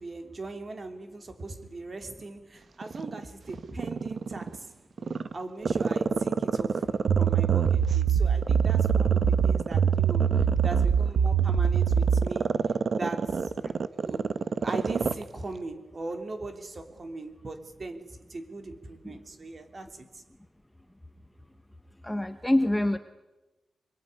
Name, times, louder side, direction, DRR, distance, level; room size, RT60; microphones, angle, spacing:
voice 1, 0.0-4.7 5.3-6.9 7.2-10.3 10.6-12.5 12.9-13.5 14.0-14.3 14.6-20.2, right 2 dB, 30° right, 6 dB, 3.0 m, -39 dB
Growling, 2.8-4.6 5.0-8.0 8.4-15.2 15.5-15.6, right 5 dB, 45° right, 0.9 m, -29 dB
sound 1, 7.1-12.3, right 7 dB, 85° right, 0.9 m, -23 dB
voice 2, 22.0-23.0, left 1 dB, 5° left, 8 dB, 1.1 m, -25 dB
25.5 x 23.0 x 9.9 m, 1.1 s
wide cardioid pair, 170°, 0 cm